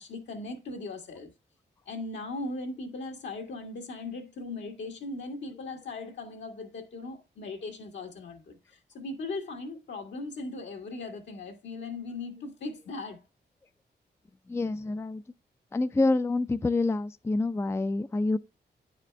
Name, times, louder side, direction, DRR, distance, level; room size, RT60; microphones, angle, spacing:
voice 1, 0.0-1.3 1.9-13.2, left 3 dB, 80° left, 1.8 m, -38 dB
voice 2, 14.5-15.2 15.7-18.4, left 2 dB, 15° left, 0.4 m, -27 dB
9.5 x 5.0 x 3.3 m
cardioid pair, 70°, 18 cm